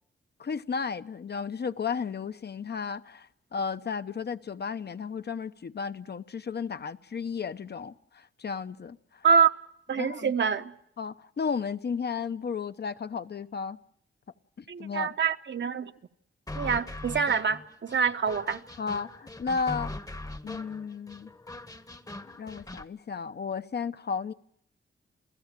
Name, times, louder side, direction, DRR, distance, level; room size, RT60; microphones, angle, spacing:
voice 1, 0.4-9.3 10.0-10.3 11.0-13.8 14.6-15.1 18.8-19.9 20.4-21.3 22.4-24.3, left 5 dB, 50° left, 0.8 m, -34 dB
voice 2, 9.9-10.7 14.7-15.9 16.5-18.6, right 6 dB, 60° right, 1.1 m, -25 dB
sound 1, 16.5-22.9, left 2 dB, 15° left, 1.0 m, -41 dB
28.5 x 17.0 x 7.4 m
cardioid pair, 80°, 21 cm